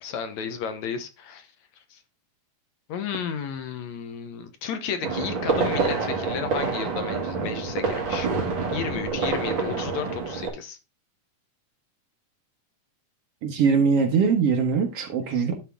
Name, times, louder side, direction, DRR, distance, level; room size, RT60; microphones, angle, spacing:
voice 1, 0.0-1.5 1.9-2.0 2.9-8.3 8.7-10.8, left 7 dB, 70° left, 2.2 m, -33 dB
sound 1, 5.0-10.5, right 4 dB, 40° right, 2.5 m, -27 dB
voice 2, 13.4-15.5, right 5 dB, 60° right, 2.0 m, -22 dB
11.0 x 4.4 x 3.5 m
omnidirectional pair, 3.5 m